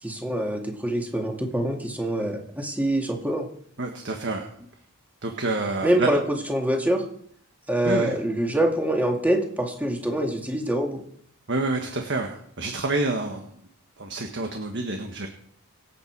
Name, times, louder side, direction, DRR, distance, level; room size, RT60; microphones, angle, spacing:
voice 1, 0.0-3.5 5.8-7.1 7.7-11.0, right 1 dB, 5° right, 1 dB, 2.2 m, -25 dB
voice 2, 3.8-4.5 5.2-6.1 7.8-8.1 11.5-13.4 14.0-15.3, right 2 dB, 55° right, 4 dB, 1.6 m, -28 dB
25.0 x 8.6 x 4.8 m, 0.64 s
head